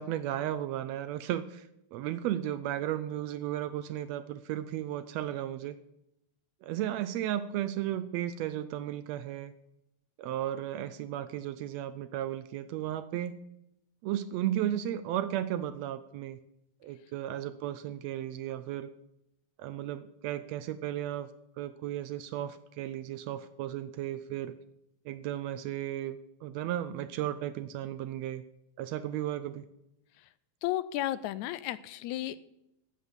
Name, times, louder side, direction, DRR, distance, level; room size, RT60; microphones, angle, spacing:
voice 1, 0.0-5.8 6.6-9.5 10.2-13.4 14.0-16.4 16.8-18.9 19.6-21.3 21.6-24.5 25.0-28.4 28.8-29.6, right 12 dB, 80° right, 13 dB, 1.6 m, -34 dB
voice 2, 30.6-32.4, left 14 dB, 80° left, 16 dB, 1.9 m, -33 dB
11.0 x 8.0 x 7.1 m, 0.83 s
omnidirectional pair, 3.3 m